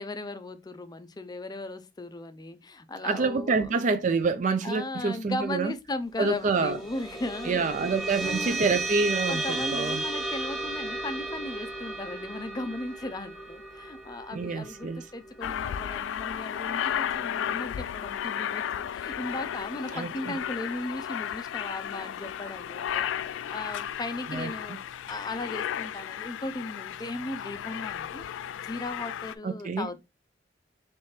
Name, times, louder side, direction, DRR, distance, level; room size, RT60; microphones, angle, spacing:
voice 1, 0.0-3.9 4.6-7.8 8.2-8.6 9.3-23.1 23.5-28.2 28.6-30.0, left 2 dB, 20° left, 0.4 m, -37 dB
voice 2, 3.0-5.7 6.2-6.8 7.5-10.0 14.3-15.0 19.9-20.3 24.3-24.5 29.4-29.9, right 4 dB, 40° right, 0.4 m, -27 dB
sound 1, 6.3-17.1, right 2 dB, ahead, 1.2 m, -34 dB
Aircraft, 15.4-29.3, left 9 dB, 85° left, 0.3 m, -34 dB
4.2 x 3.3 x 3.2 m
head